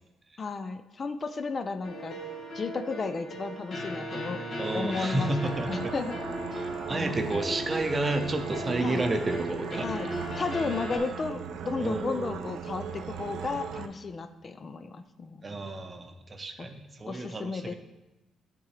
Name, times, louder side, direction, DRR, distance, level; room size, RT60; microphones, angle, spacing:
voice 1, 0.4-2.2 2.5-4.4 4.7-6.2 6.9-7.2 8.8-9.0 9.8-10.1 10.3-15.6 16.6-16.7 17.1-17.7, left 4 dB, 40° left, 9 dB, 0.4 m, -34 dB
sound 1, 1.8-11.0, equal, 55° left, 1.6 m, -37 dB
voice 2, 4.6-5.9 6.6-9.9 11.8-12.5 15.4-17.8, right 2 dB, 30° right, 6 dB, 0.7 m, -31 dB
sound 2, 5.4-13.9, right 7 dB, 75° right, 0.4 m, -38 dB
10.0 x 3.7 x 3.2 m, 1.0 s
cardioid pair, 90°, 0 cm